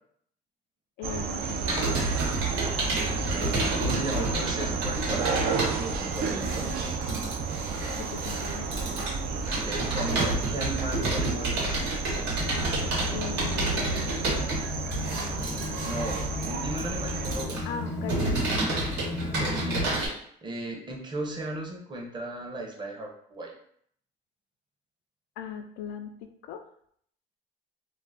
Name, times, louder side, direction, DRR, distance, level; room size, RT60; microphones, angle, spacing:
voice 1, 1.0-2.0 8.0-8.7 13.1-14.7 14.9-16.0 17.6-18.4 25.4-26.6, left 7 dB, 85° left, 6 dB, 0.4 m, -39 dB
sound 1, 1.0-17.5, right 5 dB, 65° right, 0.4 m, -32 dB
Computer keyboard, 1.6-20.1, right 2 dB, 90° right, 1.1 m, -30 dB
voice 2, 3.2-6.7 9.6-11.7 15.9-17.7 19.2-20.0 20.4-23.5, right 2 dB, 25° right, 0 dB, 0.6 m, -36 dB
sound 2, 12.4-19.9, left 2 dB, 20° left, 0.4 m, -36 dB
2.5 x 2.1 x 3.2 m, 0.65 s
cardioid pair, 110°, 17 cm